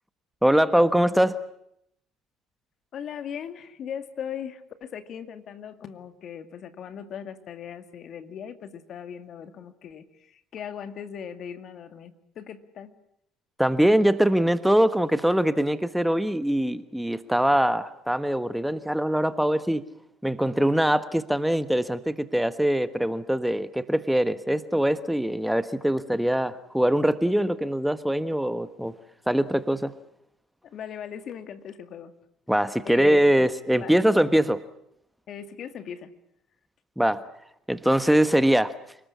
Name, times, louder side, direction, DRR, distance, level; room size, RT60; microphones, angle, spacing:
voice 1, 0.4-1.4 13.6-19.8 20.2-28.9 29.3-29.9 32.5-34.6 37.0-37.2 37.7-38.7, right 1 dB, 5° right, 12 dB, 1.3 m, -22 dB
voice 2, 2.9-13.0 30.6-32.1 32.8-33.2 33.8-34.0 35.3-36.1, left 8 dB, 55° left, 10 dB, 2.2 m, -39 dB
28.5 x 19.5 x 8.6 m, 0.76 s
hypercardioid pair, 65°, 0 cm